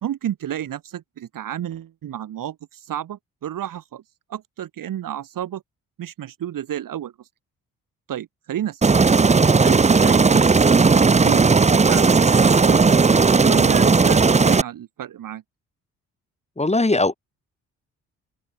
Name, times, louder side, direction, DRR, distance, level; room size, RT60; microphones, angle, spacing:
voice 1, 0.0-4.0 4.3-5.6 6.0-7.1 8.1-8.9 9.6-10.5 10.9-12.8 13.4-15.4, right 11 dB, 60° right, 1.6 m, -31 dB
Aircraft, 8.8-14.6, right 4 dB, 20° right, 0.7 m, -15 dB
voice 2, 16.6-17.1, left 2 dB, 15° left, 2.6 m, -19 dB
open air
hypercardioid pair, 45°, 38 cm